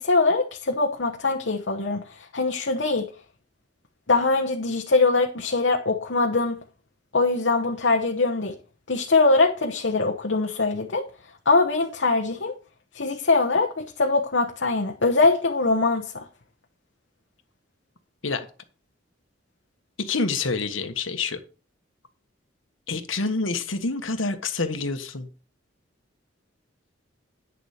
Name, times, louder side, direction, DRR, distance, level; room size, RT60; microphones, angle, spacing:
voice 1, 0.0-3.1 4.1-6.6 7.1-8.6 8.9-11.1 11.4-12.5 12.9-16.2, left 3 dB, 70° left, 1.1 m, -22 dB
voice 2, 20.0-21.4 22.9-25.3, left 3 dB, 90° left, 1.4 m, -27 dB
10.0 x 7.0 x 5.0 m
head